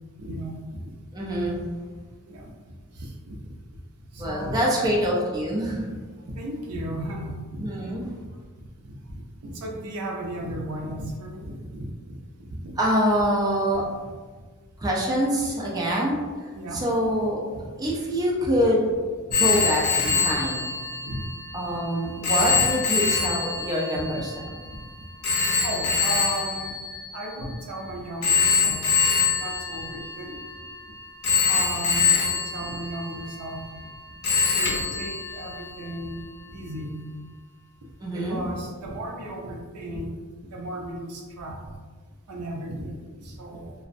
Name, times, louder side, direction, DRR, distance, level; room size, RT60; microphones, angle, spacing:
voice 1, 0.2-0.6 2.3-2.5 3.0-3.4 4.1-4.9 5.9-6.0 6.3-8.0 9.4-12.2 12.6-12.8 13.8-14.0 16.5-16.8 17.1-17.2 17.5-17.9 19.5-19.6 20.0-20.4 21.1-21.3 22.0-22.2 22.5-22.7 24.0-24.1 24.4-24.5 25.6-26.7 27.1-28.8 29.4-30.4 31.5-33.7 34.5-37.0 38.1-40.1 40.5-41.6 42.3-43.7, right 1 dB, 75° right, 0 dB, 0.5 m, -35 dB
voice 2, 1.1-1.7 4.2-5.9 7.6-8.1 12.8-13.8 14.8-17.5 17.8-18.9 19.4-20.7 21.5-24.3 38.0-38.4, equal, 15° right, -4 dB, 0.3 m, -25 dB
Telephone, 19.3-27.7 28.2-30.8 31.2-33.9 34.2-36.0, left 6 dB, 75° left, 0.5 m, -25 dB
2.5 x 2.0 x 2.5 m, 1.4 s
head